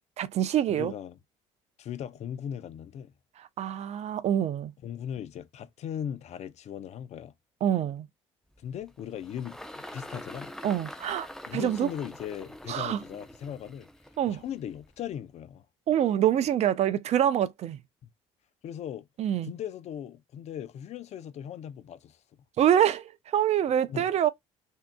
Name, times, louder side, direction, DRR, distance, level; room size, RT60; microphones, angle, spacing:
voice 1, 0.2-0.9 3.4-4.7 7.6-8.1 10.6-11.9 12.7-13.0 14.2-14.4 15.9-17.8 19.2-19.5 22.6-24.3, right 10 dB, 50° right, 0.5 m, -26 dB
voice 2, 0.7-1.2 1.8-3.1 4.8-7.3 8.6-10.5 11.5-13.9 14.3-15.7 18.6-19.1 19.4-22.2 23.9-24.0, left 9 dB, 50° left, 0.5 m, -38 dB
Engine, 8.5-15.1, left 1 dB, 5° left, 0.6 m, -45 dB
3.4 x 2.8 x 2.2 m
hypercardioid pair, 70°, 14 cm